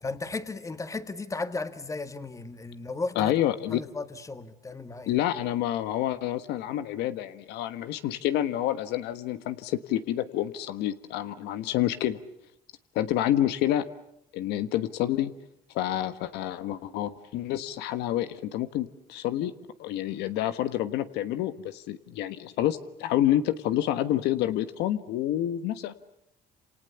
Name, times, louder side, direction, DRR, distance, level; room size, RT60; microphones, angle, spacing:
voice 1, 0.0-3.3 3.7-5.1, left 3 dB, 20° left, 1.7 m, -35 dB
voice 2, 3.1-3.8 5.1-12.2 12.9-13.9 14.3-15.3 15.7-19.5 19.8-26.0, left 12 dB, 90° left, 1.3 m, -28 dB
28.5 x 28.0 x 7.0 m
cardioid pair, 110°, 17 cm